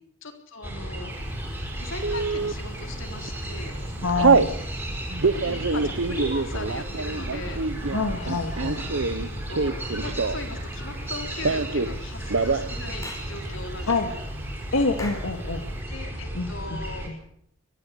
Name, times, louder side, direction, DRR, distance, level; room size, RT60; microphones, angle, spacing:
voice 1, 0.2-1.1 1.8-3.7 5.4-7.6 9.1-14.2 15.9-17.1, left 2 dB, 65° left, 4 dB, 3.6 m, -39 dB
sound 1, 0.6-17.1, right 1 dB, 10° right, 5.5 m, -34 dB
Telephone, 2.0-2.5 3.1-3.4 3.6-4.5 5.1-10.6 10.8-11.9 12.2-12.7 13.0-13.1 13.3-13.9, right 4 dB, 65° right, 0.8 m, -25 dB
voice 2, 4.0-4.5 7.9-8.9 13.9-14.1 14.7-15.6 16.3-16.8 17.1-17.2, left 3 dB, 85° left, 4 dB, 1.9 m, -26 dB
Clapping / Chirp tweet, 13.0-13.3 15.0-15.3, left 1 dB, 15° left, 3.4 m, -38 dB
22.0 x 14.5 x 8.3 m, 0.72 s
head